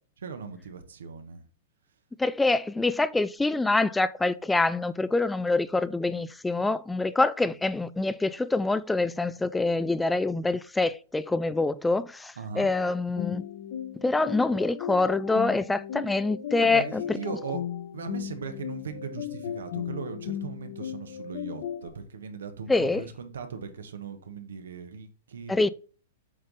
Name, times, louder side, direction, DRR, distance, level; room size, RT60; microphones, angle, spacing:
voice 1, 0.2-1.4 12.4-12.7 16.6-17.6 17.9-25.6, right 6 dB, 90° right, 1.1 m, -38 dB
voice 2, 2.2-13.4 14.0-17.0 22.7-23.0 25.5-25.7, left 3 dB, 5° left, 0.3 m, -25 dB
sound 1, 13.2-21.9, left 10 dB, 60° left, 1.0 m, -36 dB
7.7 x 3.9 x 4.0 m
hypercardioid pair, 130°, 0 cm